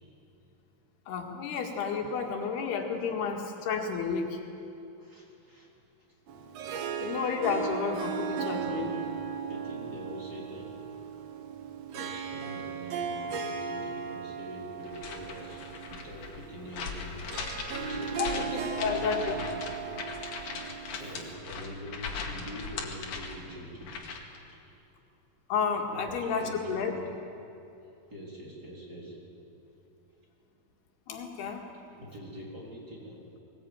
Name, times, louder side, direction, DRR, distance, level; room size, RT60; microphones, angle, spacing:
voice 1, 1.1-4.4 7.0-8.9 18.2-19.4 25.5-27.0 31.1-31.6, left 6 dB, 80° left, 2 dB, 3.9 m, -31 dB
voice 2, 5.0-5.7 7.0-7.1 8.5-8.9 9.5-10.7 11.9-15.6 15.9-17.2 17.8-19.7 20.3-20.4 20.9-24.1 24.4-24.5 25.9-27.1 28.1-29.2 31.9-33.2, equal, 25° right, -4 dB, 4.1 m, -44 dB
Harp, 6.3-21.5, right 6 dB, 80° right, 1.5 m, -37 dB
sound 1, 14.8-24.4, left 5 dB, 60° left, 3.3 m, -39 dB
21.0 x 20.0 x 9.0 m, 2.8 s
omnidirectional pair, 4.6 m